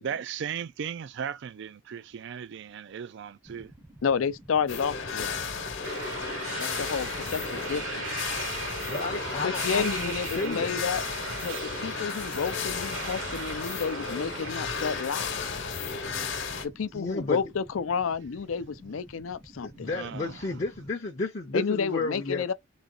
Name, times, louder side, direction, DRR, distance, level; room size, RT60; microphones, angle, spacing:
voice 1, 0.0-3.7 19.9-20.4, right 7 dB, 60° right, 0.3 m, -36 dB
sound 1, 3.4-20.9, right 1 dB, 10° right, 0.6 m, -51 dB
voice 2, 4.0-5.4 6.6-8.3 9.4-11.0 11.4-15.4 16.6-19.9 21.5-22.5, left 6 dB, 80° left, 0.5 m, -31 dB
sound 2, 4.7-16.7, left 5 dB, 65° left, 1.0 m, -34 dB
sound 3, 5.8-15.3, right 4 dB, 75° right, 1.2 m, -38 dB
voice 3, 8.9-10.8 16.9-17.4 19.6-22.4, left 3 dB, 35° left, 0.6 m, -32 dB
4.0 x 2.9 x 3.8 m
head